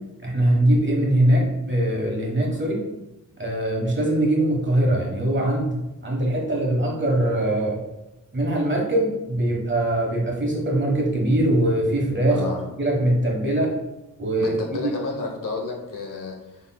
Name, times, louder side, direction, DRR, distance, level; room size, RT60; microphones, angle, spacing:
voice 1, 0.2-2.8 3.4-7.8 8.3-12.4 12.8-13.7 14.2-14.5 14.8-14.9, right 1 dB, 35° right, -1 dB, 1.3 m, -22 dB
voice 2, 12.3-12.6 14.4-16.6, left 3 dB, 70° left, 1 dB, 0.9 m, -31 dB
5.8 x 3.2 x 2.2 m, 0.98 s
cardioid pair, 75°, 33 cm